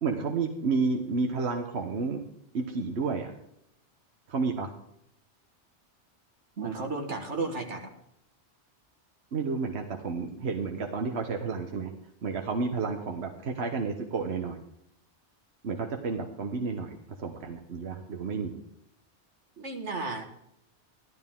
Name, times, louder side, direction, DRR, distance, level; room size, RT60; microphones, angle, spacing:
voice 1, 0.0-2.2 2.5-3.3 4.3-4.7 9.3-11.9 12.2-14.6 15.6-18.6, right 4 dB, 70° right, 3 dB, 1.3 m, -31 dB
voice 2, 6.6-7.9 19.6-20.2, right 3 dB, 85° right, 3 dB, 2.1 m, -33 dB
15.0 x 12.0 x 3.7 m, 0.75 s
omnidirectional pair, 1.2 m